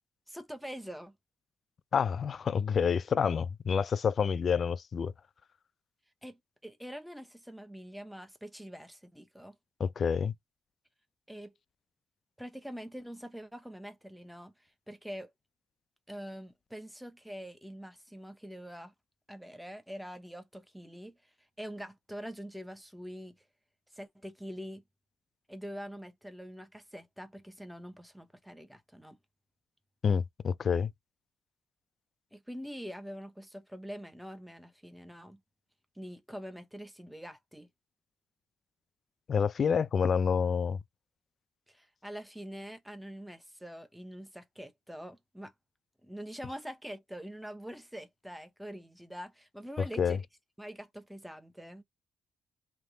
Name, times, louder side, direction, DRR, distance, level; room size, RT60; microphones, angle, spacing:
voice 1, 0.3-1.2 6.2-9.6 11.3-11.5 12.4-14.5 14.9-15.3 16.1-18.9 19.3-21.2 21.6-23.4 23.9-24.8 25.5-29.2 32.3-35.4 36.0-37.7 41.7-45.5 46.0-50.2 50.6-51.8, equal, ahead, 0.8 m, -44 dB
voice 2, 1.9-5.1 9.8-10.3 30.0-30.9 39.3-40.8 50.0-50.2, left 6 dB, 50° left, 0.4 m, -28 dB
3.3 x 2.9 x 3.9 m
cardioid pair, 90°, 0 cm